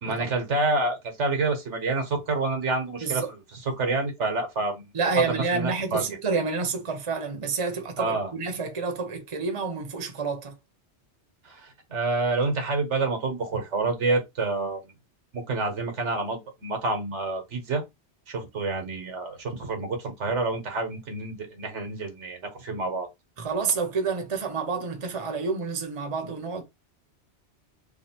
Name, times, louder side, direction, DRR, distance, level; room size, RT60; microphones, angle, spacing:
voice 1, 0.0-6.0 8.0-8.3 11.4-14.8 15.3-17.8 18.3-23.1, right 3 dB, 85° right, 1.4 m, -28 dB
voice 2, 4.9-10.5 23.4-26.6, right 4 dB, 30° right, 0.8 m, -29 dB
3.2 x 2.4 x 4.2 m
omnidirectional pair, 1.2 m